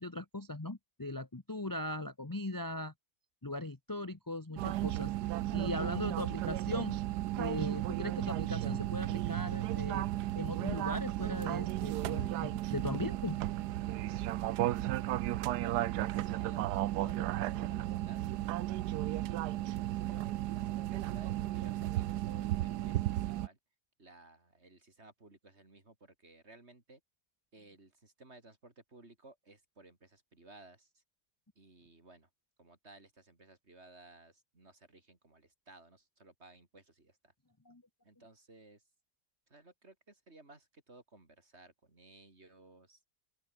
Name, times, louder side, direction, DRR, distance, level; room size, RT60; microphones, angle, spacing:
voice 1, 0.0-2.9 3.4-5.1 5.5-7.0 7.4-10.1 10.3-13.4 37.6-37.8, left 2 dB, 15° left, 1.1 m, -39 dB
sound 1, 4.6-23.5, right 14 dB, 80° right, 1.2 m, -34 dB
voice 2, 14.7-18.5 20.5-23.6 24.0-27.0 27.5-30.9 31.6-32.3 32.6-37.1 38.0-38.8 39.5-43.0, right 2 dB, 40° right, 4.0 m, -57 dB
open air
omnidirectional pair, 1.7 m